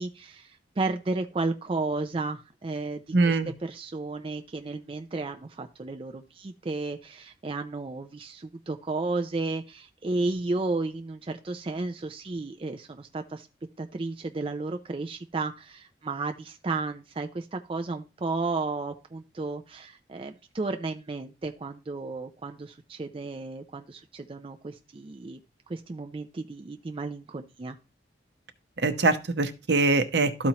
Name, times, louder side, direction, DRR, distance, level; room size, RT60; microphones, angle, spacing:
voice 1, 0.0-13.5 13.8-25.4 25.7-27.8, right 3 dB, 30° right, 7 dB, 0.4 m, -33 dB
voice 2, 3.1-3.5 28.8-30.5, right 3 dB, 70° right, 9 dB, 0.8 m, -23 dB
13.0 x 4.3 x 2.9 m, 0.27 s
head